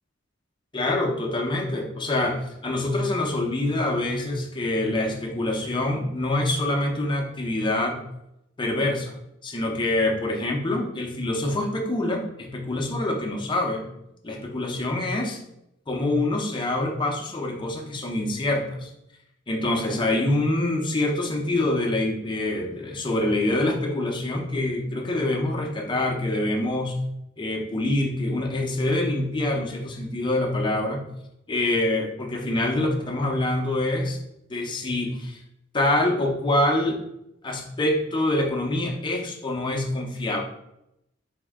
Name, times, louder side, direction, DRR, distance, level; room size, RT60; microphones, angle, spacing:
voice 1, 0.7-8.0 8.6-9.1 9.4-13.9 14.2-15.4 15.9-18.9 19.5-27.0 27.4-31.1 31.5-34.2 34.5-35.4 35.7-37.0 37.4-40.4, left 1 dB, 25° left, 1 dB, 0.6 m, -25 dB
4.2 x 2.7 x 3.5 m, 0.81 s
head